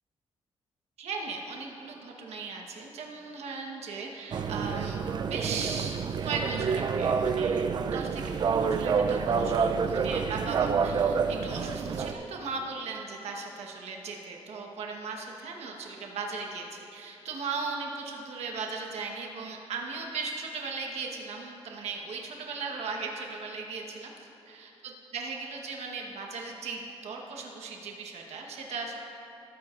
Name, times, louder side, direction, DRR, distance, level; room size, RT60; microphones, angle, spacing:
voice 1, 1.0-29.0, right 4 dB, 90° right, 1 dB, 1.1 m, -37 dB
sound 1, 4.3-12.1, right 5 dB, 45° right, 0.4 m, -28 dB
19.5 x 9.5 x 2.5 m, 2.8 s
wide cardioid pair, 175°, 11 cm